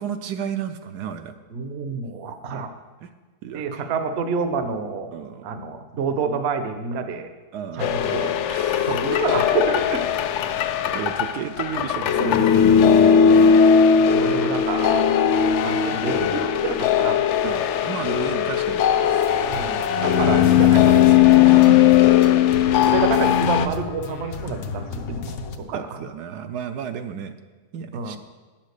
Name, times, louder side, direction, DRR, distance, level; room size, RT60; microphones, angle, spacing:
voice 1, 0.0-1.3 3.0-3.1 3.4-3.9 5.1-5.5 7.5-9.0 10.9-13.6 17.4-19.4 20.0-20.3 21.8-21.9 25.7-27.3 27.7-28.2, right 8 dB, 75° right, 8 dB, 1.2 m, -33 dB
voice 2, 1.5-2.7 3.5-5.1 5.4-7.3 7.8-8.4 8.8-10.0 13.5-15.1 15.6-17.3 19.4-21.9 22.7-26.0 27.9-28.2, right 5 dB, 50° right, 8 dB, 0.9 m, -28 dB
sound 1, 7.8-23.7, left 8 dB, 80° left, 0.6 m, -18 dB
sound 2, 19.0-25.6, left 4 dB, 60° left, 1.1 m, -34 dB
10.0 x 7.4 x 6.5 m, 1.4 s
omnidirectional pair, 1.8 m